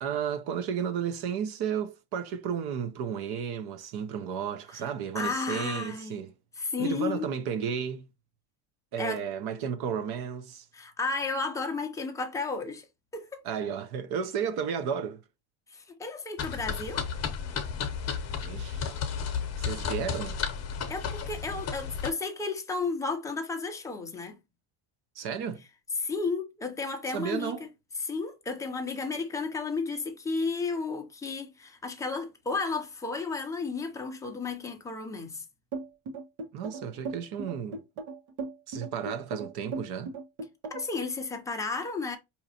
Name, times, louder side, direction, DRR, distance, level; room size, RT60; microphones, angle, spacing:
voice 1, 0.0-6.3 6.8-8.1 8.9-10.7 13.4-15.2 18.4-18.9 19.6-20.4 25.2-25.6 27.1-27.7 36.5-37.8 38.7-40.1, right 7 dB, 55° right, 0.8 m, -33 dB
voice 2, 5.1-6.2 6.6-7.3 9.0-9.2 10.7-12.9 13.1-13.4 15.7-17.1 20.9-24.4 26.0-27.7 28.0-35.4 40.7-42.2, left 4 dB, 5° left, 0.5 m, -33 dB
sound 1, 16.4-22.1, left 6 dB, 35° left, 0.9 m, -33 dB
sound 2, 35.7-41.0, right 3 dB, 80° right, 1.4 m, -37 dB
4.9 x 2.9 x 2.8 m
cardioid pair, 160°, 48 cm